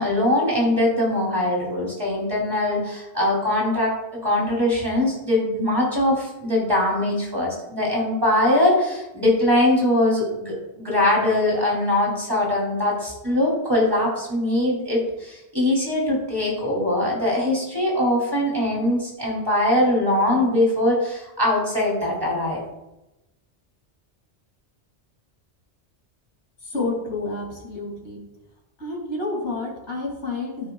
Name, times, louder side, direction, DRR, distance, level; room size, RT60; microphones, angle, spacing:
voice 1, 0.0-3.9 4.2-22.6, left 1 dB, 20° right, -3 dB, 3.0 m, -22 dB
voice 2, 26.6-28.2 28.8-30.7, left 2 dB, 75° left, -2 dB, 3.0 m, -29 dB
15.0 x 6.7 x 2.3 m, 0.94 s
omnidirectional pair, 1.2 m